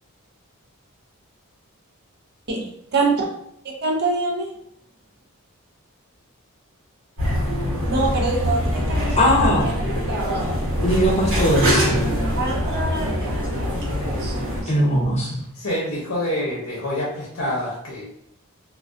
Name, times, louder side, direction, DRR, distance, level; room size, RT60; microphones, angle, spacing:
voice 1, 2.9-3.3 3.8-4.5 7.9-10.4 12.4-14.4 14.6-14.7, right 3 dB, 50° right, 0 dB, 0.5 m, -26 dB
sound 1, 7.2-14.6, equal, 65° right, 1.1 m, -23 dB
voice 2, 9.2-9.8 10.8-12.1 14.7-15.4, equal, 30° left, -3 dB, 0.6 m, -20 dB
voice 3, 15.5-18.0, left 1 dB, 70° left, -5 dB, 0.7 m, -27 dB
2.2 x 2.2 x 2.5 m, 0.71 s
head